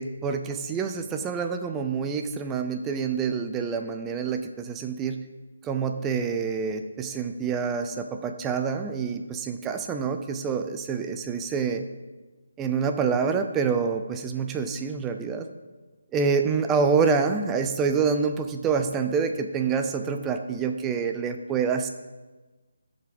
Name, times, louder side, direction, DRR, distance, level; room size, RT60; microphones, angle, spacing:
voice 1, 0.0-5.2 5.6-11.8 12.6-15.5 16.1-21.9, right 5 dB, 10° right, 5 dB, 0.4 m, -27 dB
13.0 x 5.7 x 5.1 m, 1.2 s
hypercardioid pair, 175°, 0 cm